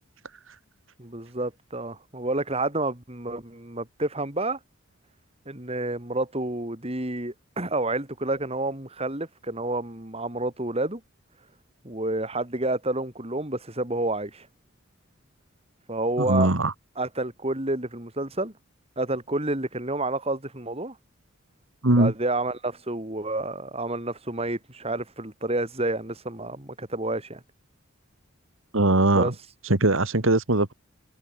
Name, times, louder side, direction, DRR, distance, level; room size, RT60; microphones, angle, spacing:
voice 1, 1.0-4.6 5.4-11.0 11.8-14.5 15.9-16.5 17.0-18.5 19.0-21.0 21.9-27.4 29.1-29.3, right 2 dB, 30° right, 3.3 m, -29 dB
voice 2, 16.3-16.7 21.8-22.1 28.7-29.3 29.7-30.7, right 2 dB, 70° right, 2.1 m, -20 dB
head